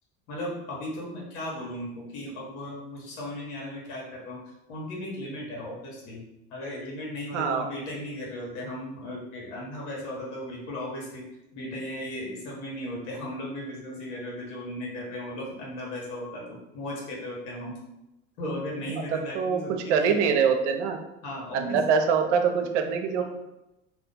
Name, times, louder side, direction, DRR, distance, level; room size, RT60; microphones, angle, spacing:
voice 1, 0.3-4.4 4.7-6.2 6.5-11.2 11.5-17.8 18.4-20.5 21.2-22.0 23.2-23.3, left 1 dB, 70° left, -3 dB, 1.1 m, -36 dB
voice 2, 7.3-7.7 19.1-19.6 19.9-21.0 21.5-23.2, right 6 dB, 85° right, 5 dB, 0.6 m, -24 dB
2.4 x 2.2 x 3.8 m, 0.91 s
supercardioid pair, 90°, 35 cm